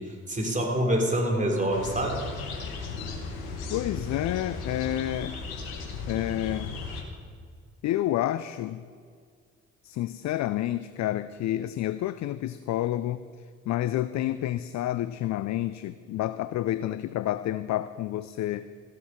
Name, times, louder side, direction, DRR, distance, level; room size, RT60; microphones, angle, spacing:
voice 1, 0.0-2.3, right 1 dB, 20° right, 1 dB, 3.5 m, -26 dB
sound 1, 1.7-7.0, left 4 dB, 70° left, 1.8 m, -36 dB
voice 2, 3.7-5.4 6.1-6.8 7.8-8.9 9.8-13.3 13.7-18.7, left 13 dB, 45° left, 14 dB, 0.5 m, -29 dB
14.5 x 8.1 x 5.8 m, 2.1 s
hypercardioid pair, 45°, 39 cm